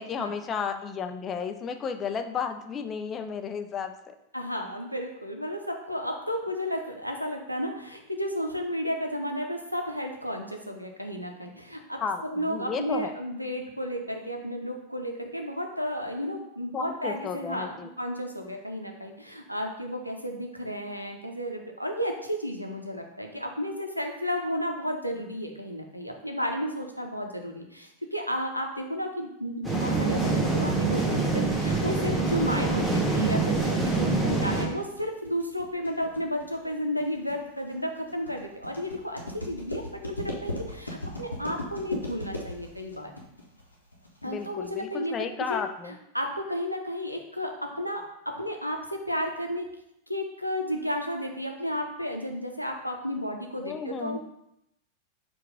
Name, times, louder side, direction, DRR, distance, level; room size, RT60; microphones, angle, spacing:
voice 1, 0.0-3.9 12.0-13.1 16.7-17.9 32.8-33.1 44.2-45.9 53.6-54.2, left 6 dB, 25° left, 6 dB, 0.4 m, -33 dB
voice 2, 4.3-43.1 44.2-45.1 45.5-49.7 50.1-54.2, equal, 90° right, 3 dB, 0.6 m, -33 dB
sound 1, 29.6-34.7, right 3 dB, ahead, 0.9 m, -25 dB
sound 2, 32.9-44.8, left 1 dB, 85° left, 0.8 m, -38 dB
4.5 x 2.3 x 4.8 m, 0.82 s
figure-of-eight pair, 90°, 0 cm